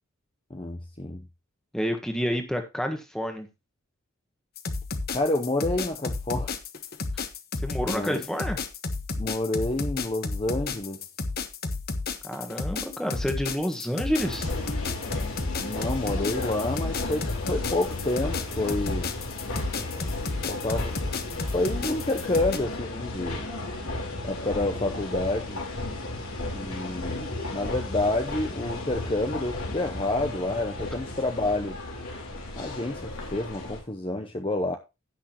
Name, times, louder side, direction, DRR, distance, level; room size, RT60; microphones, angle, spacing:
voice 1, 0.5-1.2 5.1-6.5 7.9-8.2 9.2-11.0 15.6-19.1 20.5-21.0 21.5-23.5 24.2-25.6 26.5-31.8 32.6-34.8, left 2 dB, 25° left, 0.8 m, -29 dB
voice 2, 1.7-3.5 7.6-8.6 12.2-14.5, equal, 5° left, 1.5 m, -29 dB
sound 1, 4.6-22.6, left 3 dB, 45° left, 1.0 m, -32 dB
sound 2, 14.2-33.8, left 2 dB, 75° left, 4.1 m, -34 dB
16.0 x 6.3 x 3.0 m
head